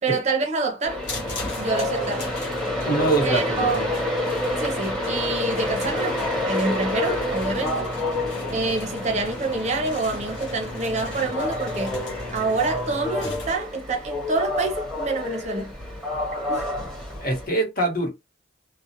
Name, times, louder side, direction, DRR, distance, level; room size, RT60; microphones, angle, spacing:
voice 1, 0.0-1.0 1.6-2.4 3.2-3.9 4.6-6.2 6.4-7.9 8.5-12.0 12.3-15.7 16.5-16.7, right 3 dB, 40° right, 0.6 m, -27 dB
Train, 0.8-17.5, left 1 dB, ahead, 1.0 m, -29 dB
sound 1, 1.0-13.5, left 1 dB, 85° left, 1.0 m, -36 dB
voice 2, 2.8-3.9 17.2-18.1, right 2 dB, 50° left, 1.1 m, -24 dB
2.3 x 2.0 x 2.8 m
head